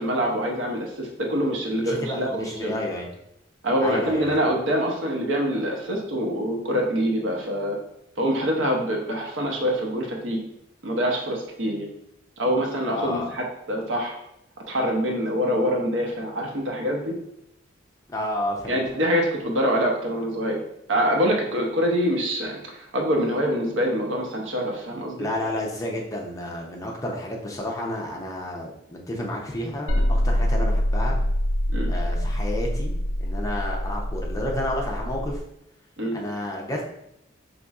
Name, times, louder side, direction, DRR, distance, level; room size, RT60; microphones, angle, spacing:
voice 1, 0.0-2.7 3.6-7.8 8.2-10.4 10.8-11.9 12.4-14.1 14.7-17.1 18.7-20.6 20.9-25.3 31.7-31.9 36.0-36.2, equal, 70° right, 0 dB, 0.8 m, -25 dB
voice 2, 1.8-3.1 3.8-4.3 12.9-13.3 18.1-18.8 25.2-31.2 31.9-35.4 36.1-36.8, left 1 dB, 15° left, -1 dB, 0.6 m, -31 dB
sound 1, 29.9-35.4, equal, 70° left, 0.5 m, -25 dB
4.0 x 3.0 x 2.4 m, 0.81 s
head